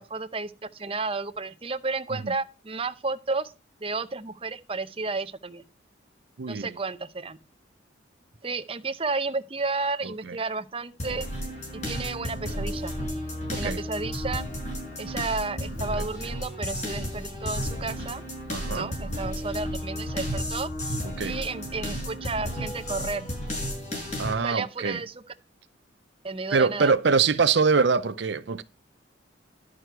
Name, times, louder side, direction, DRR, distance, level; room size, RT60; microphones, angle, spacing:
voice 1, 0.0-3.5 3.8-5.6 6.5-7.4 8.4-11.3 11.7-12.9 13.6-14.4 15.0-18.2 18.7-23.3 24.4-25.1 26.2-26.9, right 3 dB, 30° right, 0.7 m, -32 dB
voice 2, 6.4-6.8 10.0-10.4 13.5-13.8 16.0-16.1 18.5-18.9 21.2-21.4 24.2-25.0 26.5-28.6, right 5 dB, 65° right, 0.6 m, -24 dB
sound 1, 11.0-24.3, equal, 35° left, 5.0 m, -33 dB
11.5 x 6.2 x 4.5 m
head